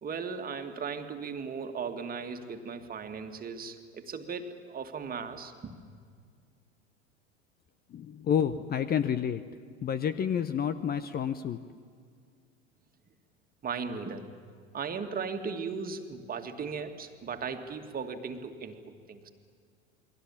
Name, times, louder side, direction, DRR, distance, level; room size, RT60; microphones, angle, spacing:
voice 1, 0.0-5.8 13.6-14.4 14.7-19.3, right 5 dB, 25° right, 6 dB, 2.2 m, -37 dB
voice 2, 7.9-9.4 9.8-11.6, left 8 dB, 25° left, 14 dB, 0.9 m, -29 dB
28.5 x 22.0 x 7.3 m, 2.1 s
figure-of-eight pair, 80°, 35 cm